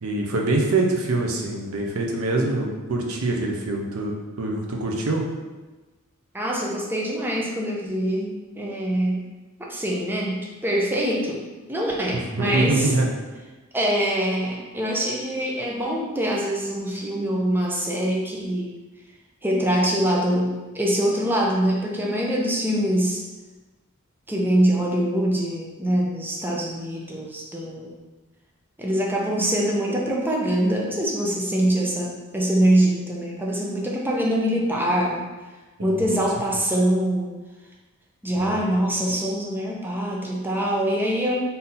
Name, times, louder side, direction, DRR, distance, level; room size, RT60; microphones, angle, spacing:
voice 1, 0.0-5.2 12.1-13.1 35.8-36.0 38.4-38.6, right 2 dB, 80° right, 0 dB, 0.7 m, -24 dB
voice 2, 6.3-9.2 9.7-11.4 11.7-12.9 13.7-18.7 19.4-23.2 24.3-27.9 28.8-35.2 35.8-37.3 38.2-41.3, right 1 dB, 10° right, -3 dB, 0.6 m, -24 dB
3.8 x 2.8 x 4.1 m, 1.2 s
head